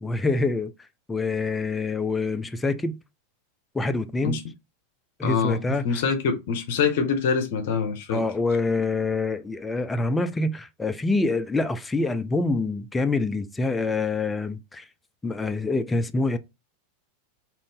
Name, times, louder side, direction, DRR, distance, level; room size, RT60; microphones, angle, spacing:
voice 1, 0.0-0.7 1.1-3.0 3.7-4.4 5.2-6.0 8.1-14.8 15.2-16.4, left 3 dB, 10° left, 0.4 m, -26 dB
voice 2, 5.2-5.6 5.8-8.2, left 6 dB, 55° left, 0.7 m, -24 dB
2.5 x 2.5 x 3.5 m
figure-of-eight pair, 90°, 0 cm